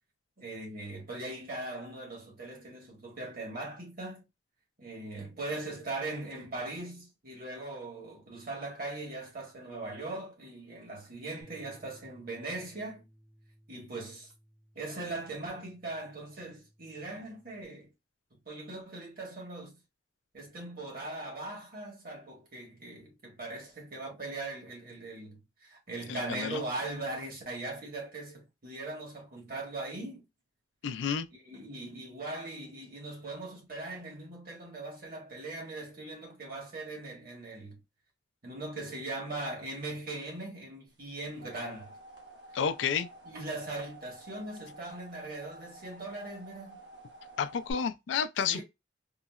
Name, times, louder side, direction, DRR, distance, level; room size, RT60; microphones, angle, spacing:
voice 1, 0.4-4.2 4.8-13.1 13.7-14.3 14.7-17.9 18.4-19.7 20.3-30.2 31.4-37.8 38.4-42.0 43.2-46.8 48.5-48.6, right 2 dB, 55° right, 1.3 m, -40 dB
sound 1, 11.4-17.7, equal, 15° right, 0.6 m, -61 dB
voice 2, 26.1-26.6 30.8-31.3 42.5-43.1 47.4-48.6, left 7 dB, 90° left, 0.3 m, -30 dB
sound 2, 41.0-47.7, right 2 dB, 80° right, 0.9 m, -51 dB
3.8 x 2.0 x 2.3 m
head